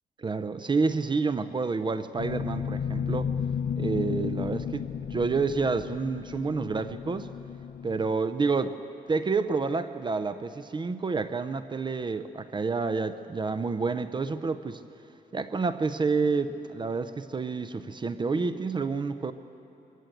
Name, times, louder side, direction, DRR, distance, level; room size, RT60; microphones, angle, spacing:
voice 1, 0.2-3.3 3.8-7.3 7.8-8.7 9.1-14.8 15.3-19.3, right 4 dB, 30° right, 12 dB, 0.6 m, -29 dB
sound 1, 2.2-8.1, left 7 dB, 50° left, 0.4 m, -33 dB
22.0 x 15.5 x 7.9 m, 3.0 s
cardioid pair, 135°, 17 cm